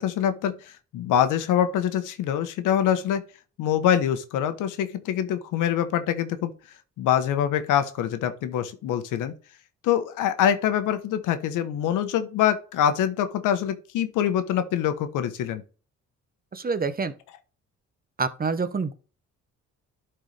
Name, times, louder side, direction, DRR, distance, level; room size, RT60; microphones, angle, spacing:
voice 1, 0.0-3.2 3.6-6.5 7.0-9.3 9.8-15.6, left 10 dB, 90° left, 1.1 m, -24 dB
voice 2, 16.5-17.1 18.2-18.9, right 4 dB, 30° right, 1.0 m, -27 dB
12.0 x 4.5 x 3.3 m
cardioid pair, 90°, 30 cm